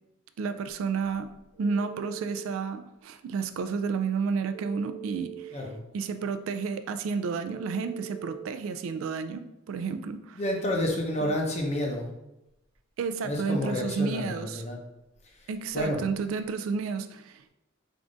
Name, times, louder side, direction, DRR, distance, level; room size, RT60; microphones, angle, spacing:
voice 1, 0.4-1.3 1.6-5.6 5.9-10.4 11.2-11.3 13.0-14.6 15.5-17.5, right 5 dB, 70° right, 10 dB, 0.3 m, -31 dB
Telephone, 1.5-2.6 4.5-5.5 7.4-8.5, right 12 dB, 75° left, 1.2 m, -42 dB
voice 2, 10.3-12.1 13.2-14.8 15.7-16.0, left 1 dB, 35° left, 0 dB, 0.7 m, -29 dB
3.6 x 2.5 x 3.8 m, 0.91 s
head